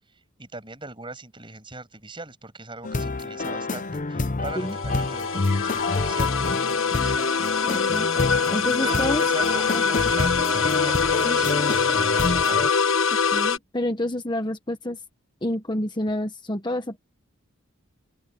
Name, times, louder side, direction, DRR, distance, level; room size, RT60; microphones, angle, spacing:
voice 1, 0.4-6.4 7.0-7.3 8.7-12.9, right 3 dB, 25° right, 6.5 m, -40 dB
sound 1, 2.8-12.7, left 3 dB, 40° left, 0.7 m, -28 dB
sound 2, 4.5-13.6, left 5 dB, 65° left, 1.1 m, -24 dB
voice 2, 7.6-8.1 8.5-9.2 9.7-9.8 11.2-11.4 13.3-15.0 15.4-17.0, left 1 dB, 20° left, 1.2 m, -28 dB
open air
head